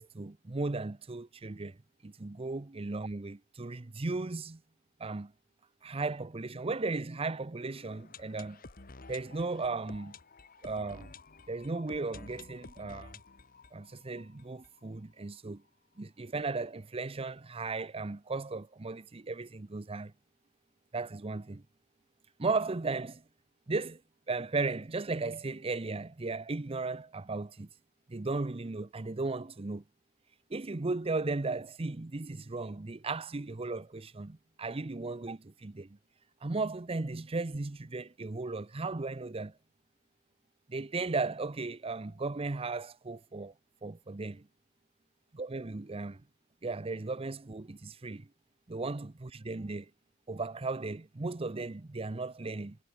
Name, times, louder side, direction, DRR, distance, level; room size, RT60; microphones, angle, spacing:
voice 1, 0.0-1.8 2.0-4.6 5.0-5.3 5.8-8.6 9.1-10.2 10.6-11.1 11.5-13.2 13.7-15.6 16.0-20.1 20.9-21.6 22.4-23.2 23.7-24.0 24.3-27.7 28.1-29.8 30.5-36.0 36.4-39.5 40.7-43.5 43.8-44.5 45.3-46.2 46.6-48.3 48.7-49.9 50.3-52.8, right 3 dB, 30° right, 0.7 m, -36 dB
sound 1, 7.6-15.4 15.7-15.8 16.0-16.1 16.6-16.7, left 3 dB, 45° left, 1.7 m, -52 dB
head